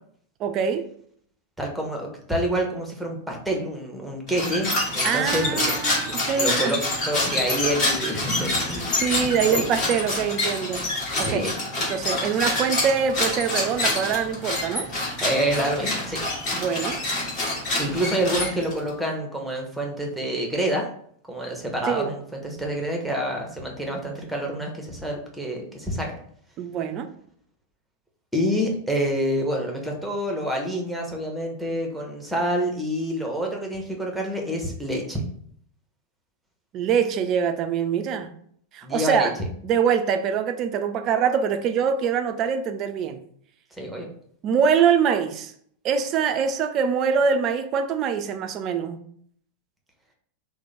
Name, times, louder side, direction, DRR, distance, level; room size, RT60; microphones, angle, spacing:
voice 1, 0.4-0.9 5.0-6.8 9.0-10.9 11.2-11.5 11.8-14.9 16.5-17.0 21.9-22.1 26.6-27.1 36.7-38.3 38.7-39.3 39.6-43.2 44.4-45.5 45.8-49.0, right 7 dB, 35° right, 0.4 m, -24 dB
voice 2, 1.6-5.6 6.3-6.8 7.1-9.1 9.5-9.6 11.2-11.5 15.2-16.2 17.8-20.9 21.3-26.2 28.3-35.2 38.8-39.3 43.8-44.1, equal, 5° right, 0.8 m, -27 dB
sound 1, 4.3-18.9, left 2 dB, 35° left, 1.3 m, -27 dB
2.9 x 2.1 x 4.0 m
figure-of-eight pair, 90°, 0 cm